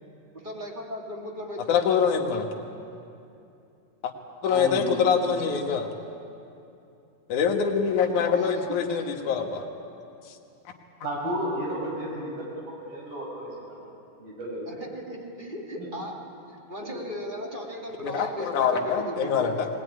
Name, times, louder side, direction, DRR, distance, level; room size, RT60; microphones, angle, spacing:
voice 1, 0.3-2.0 4.4-4.7 8.3-9.2 14.7-16.2 16.5-19.5, equal, 15° right, -1 dB, 2.0 m, -37 dB
voice 2, 1.6-2.5 4.4-5.9 7.3-9.7 10.3-10.4 18.0-19.7, left 6 dB, 65° left, 2 dB, 2.9 m, -24 dB
voice 3, 4.5-4.9 11.0-13.9 14.2-14.7 15.8-15.9 16.8-17.0, equal, 75° right, -2 dB, 8.2 m, -33 dB
20.0 x 20.0 x 9.8 m, 2.6 s
omnidirectional pair, 4.0 m